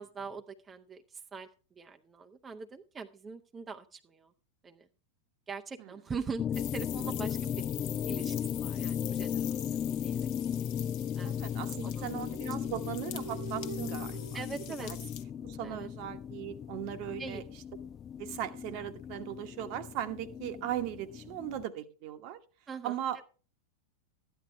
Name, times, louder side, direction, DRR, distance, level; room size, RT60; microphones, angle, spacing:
voice 1, 0.0-4.3 4.6-4.9 5.5-7.6 8.1-10.3 11.1-11.5 11.8-12.2 14.3-14.9 15.6-15.9 17.2-17.4 22.7-23.0, right 5 dB, 20° right, 5 dB, 0.8 m, -43 dB
sound 1, 6.4-21.7, left 9 dB, 25° left, 0.4 m, -36 dB
sound 2, 6.5-15.2, left 12 dB, 45° left, 1.1 m, -45 dB
voice 2, 11.2-14.2 14.7-15.0 15.4-17.4 18.2-22.4 22.8-23.2, right 11 dB, 45° right, 9 dB, 1.2 m, -38 dB
sound 3, 11.9-15.7, right 7 dB, 70° right, 1.0 m, -46 dB
13.5 x 10.5 x 3.3 m, 0.37 s
figure-of-eight pair, 90°, 0 cm